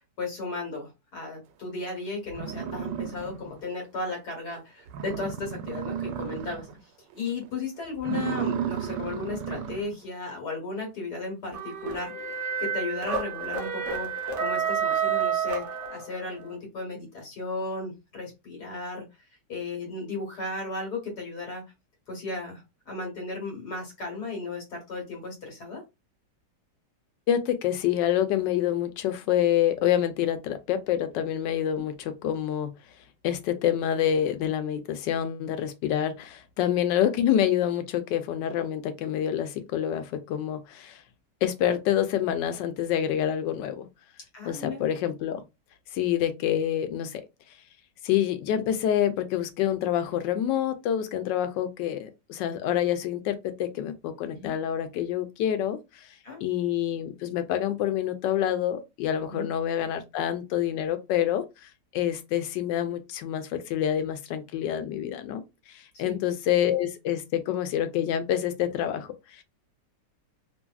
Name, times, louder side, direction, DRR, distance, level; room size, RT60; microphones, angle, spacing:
voice 1, 0.2-19.0 19.5-21.6 22.1-25.8 31.7-31.8 44.3-44.8 54.3-54.5 56.2-56.4 59.3-59.5 65.9-66.2, left 3 dB, 65° left, 1.6 m, -35 dB
sound 1, 1.8-1.9 2.3-3.7 4.1-4.2 4.6-4.7 4.9-6.8 7.1-7.4 7.9-10.0, right 8 dB, 90° right, 1.2 m, -33 dB
sound 2, 11.5-16.3, right 6 dB, 55° right, 0.8 m, -29 dB
voice 2, 27.3-32.7 33.2-41.0 41.4-43.9 44.4-45.4 45.9-47.2 48.0-56.1 56.4-65.4 65.7-69.4, left 10 dB, 85° left, 1.3 m, -27 dB
3.0 x 2.5 x 2.3 m
omnidirectional pair, 1.9 m